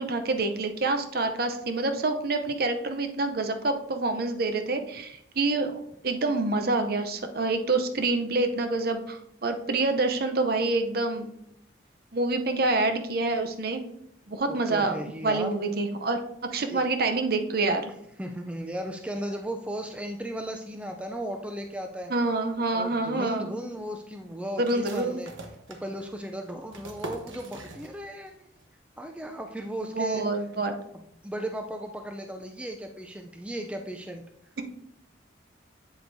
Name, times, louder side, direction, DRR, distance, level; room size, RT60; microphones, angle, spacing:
voice 1, 0.0-11.3 12.1-13.8 14.3-16.2 16.5-17.9 22.1-23.6 24.6-25.2 29.9-30.7, right 2 dB, 50° right, 7 dB, 0.7 m, -27 dB
voice 2, 14.5-15.5 16.7-16.8 18.2-22.1 22.7-25.3 25.7-28.4 29.0-30.2 30.9-34.2, right 1 dB, 5° right, 4 dB, 0.4 m, -36 dB
sound 1, 24.6-28.3 28.6-28.7 29.1-29.6, right 2 dB, 85° right, 1.1 m, -44 dB
8.0 x 7.9 x 2.7 m, 0.75 s
head